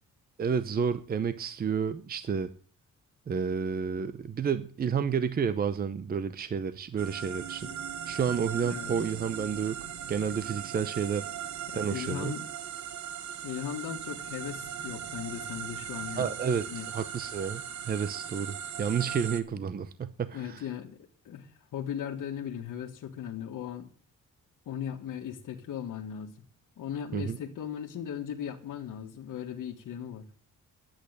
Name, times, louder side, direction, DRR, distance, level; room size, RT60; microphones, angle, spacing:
voice 1, 0.4-2.5 3.3-7.7 8.1-9.8 10.1-11.3 11.7-12.3 16.2-20.6 27.1-27.4, right 6 dB, 30° right, 13 dB, 0.7 m, -30 dB
sound 1, 7.0-19.4, right 8 dB, 65° right, 1.2 m, -39 dB
voice 2, 8.6-8.9 11.3-11.4 11.7-12.4 13.4-16.3 16.6-16.9 19.5-19.6 20.3-23.9 24.6-26.5 26.8-30.3, left 9 dB, 80° left, 0 dB, 1.7 m, -38 dB
11.0 x 8.8 x 8.0 m, 0.42 s
wide cardioid pair, 165°, 31 cm